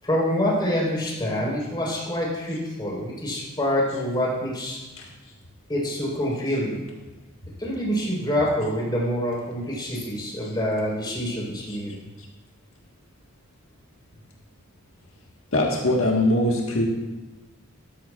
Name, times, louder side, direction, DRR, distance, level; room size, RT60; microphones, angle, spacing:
voice 1, 0.0-4.8 5.7-6.8 7.6-12.0, equal, 20° left, -5 dB, 4.1 m, -26 dB
voice 2, 15.5-16.8, left 1 dB, 85° left, -1 dB, 1.5 m, -22 dB
13.5 x 13.0 x 2.4 m, 1.1 s
head